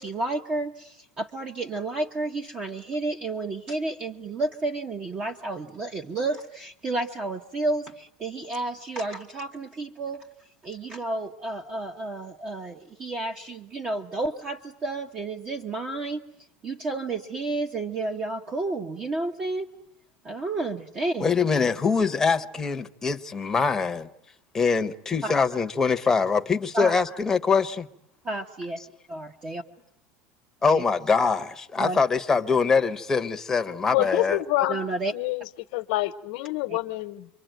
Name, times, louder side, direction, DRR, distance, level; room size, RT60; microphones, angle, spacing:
voice 1, 0.0-10.3 10.6-16.2 16.6-19.7 20.2-21.3 25.2-25.4 26.7-26.9 28.2-28.8 29.1-29.6 30.7-30.8 31.8-32.0 34.0-34.1 34.7-35.1 36.7-36.8, right 2 dB, 25° right, 1.1 m, -31 dB
voice 2, 21.2-24.1 24.5-27.9 30.6-34.4, left 5 dB, 10° left, 1.0 m, -23 dB
voice 3, 33.9-34.8 35.1-37.3, left 17 dB, 70° left, 1.1 m, -27 dB
27.5 x 23.5 x 9.1 m
cardioid pair, 155°, 4 cm